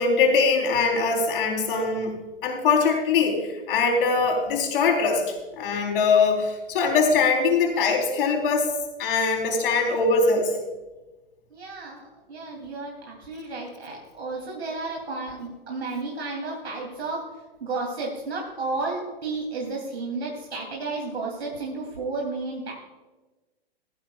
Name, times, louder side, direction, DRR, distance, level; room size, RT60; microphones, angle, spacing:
voice 1, 0.0-2.1 2.4-8.7 9.0-10.6, left 4 dB, 60° left, 1 dB, 3.7 m, -22 dB
voice 2, 11.5-17.3 17.6-22.7, right 3 dB, 85° right, -2 dB, 3.1 m, -32 dB
16.0 x 14.5 x 2.4 m, 1.1 s
hypercardioid pair, 130°, 31 cm